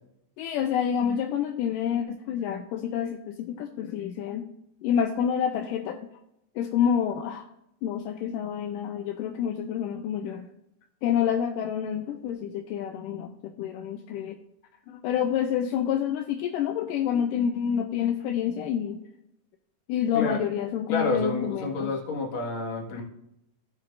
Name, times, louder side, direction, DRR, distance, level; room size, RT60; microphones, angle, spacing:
voice 1, 0.4-4.5 4.8-6.0 6.6-7.5 7.8-10.5 11.0-13.3 13.6-14.4 14.9-19.0 19.9-21.9, left 8 dB, 80° left, 5 dB, 2.1 m, -28 dB
voice 2, 20.9-23.0, left 4 dB, 45° left, -2 dB, 2.1 m, -29 dB
16.0 x 6.0 x 2.5 m, 0.83 s
omnidirectional pair, 4.1 m